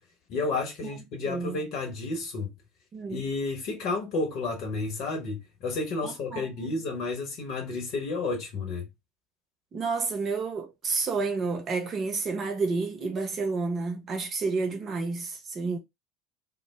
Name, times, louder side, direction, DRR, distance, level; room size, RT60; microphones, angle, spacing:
voice 1, 0.3-2.5 3.1-8.9, left 3 dB, 50° left, 1.0 m, -31 dB
voice 2, 1.3-1.6 2.9-3.2 6.0-6.7 9.7-15.8, right 4 dB, 35° right, 0.7 m, -30 dB
2.3 x 2.0 x 3.3 m
figure-of-eight pair, 70°, 0 cm